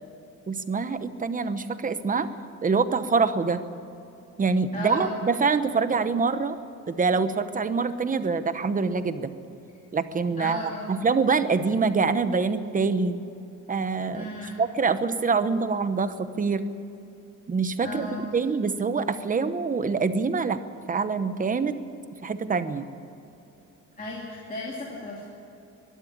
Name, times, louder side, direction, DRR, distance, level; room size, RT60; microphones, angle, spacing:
voice 1, 0.5-2.3 2.6-3.6 4.4-6.6 6.9-9.4 9.9-10.6 10.9-13.2 13.7-14.2 14.6-16.6 17.5-20.6 20.9-21.8 22.2-22.9, right 4 dB, 25° right, 11 dB, 0.9 m, -25 dB
voice 2, 4.7-5.2 10.4-11.1 14.1-14.6 17.8-18.2 24.0-25.3, left 1 dB, 25° left, -4 dB, 2.8 m, -35 dB
22.5 x 12.5 x 10.0 m, 2.8 s
cardioid pair, 170°, 32 cm